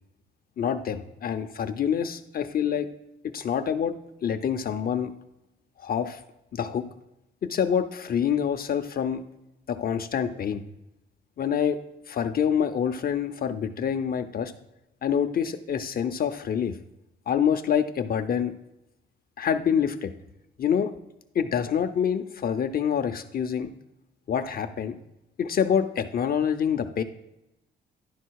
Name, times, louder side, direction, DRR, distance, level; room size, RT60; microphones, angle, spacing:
voice 1, 0.6-2.9 3.3-3.9 4.2-5.1 5.8-6.2 6.5-6.9 7.4-9.2 9.7-10.6 11.4-11.8 12.1-14.5 15.0-16.7 17.3-18.5 19.4-20.1 20.6-20.9 21.3-23.7 24.3-25.0 25.4-27.0, left 8 dB, 50° left, 9 dB, 0.6 m, -26 dB
11.0 x 4.0 x 4.6 m, 0.92 s
cardioid pair, 90°, 20 cm